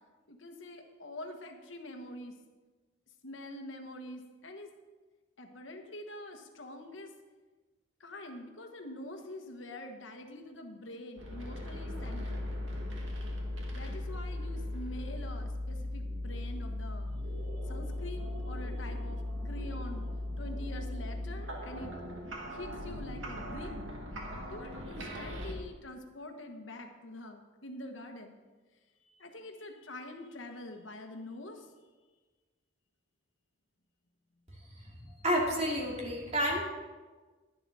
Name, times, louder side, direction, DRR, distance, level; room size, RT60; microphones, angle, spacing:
voice 1, 0.3-2.3 3.2-4.7 5.4-7.1 8.0-12.4 13.7-17.2 17.5-20.1 20.4-22.0 22.5-23.7 24.5-28.4 29.0-31.7, left 1 dB, 80° left, 4 dB, 1.3 m, -45 dB
sound 1, 11.2-25.5, left 1 dB, 90° right, 2.0 m, -38 dB
voice 2, 35.2-36.6, equal, 35° right, -2 dB, 2.5 m, -30 dB
11.0 x 11.0 x 4.1 m, 1.3 s
head